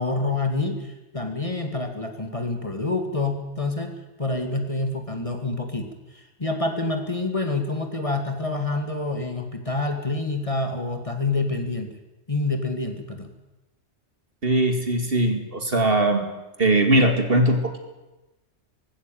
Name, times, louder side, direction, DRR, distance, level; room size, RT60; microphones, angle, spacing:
voice 1, 0.0-3.9 4.2-12.0 12.3-13.3, left 2 dB, 25° left, 5 dB, 2.2 m, -27 dB
voice 2, 14.4-16.3 16.6-17.8, right 1 dB, 50° right, 6 dB, 2.4 m, -20 dB
19.0 x 15.5 x 9.2 m, 1.1 s
omnidirectional pair, 1.3 m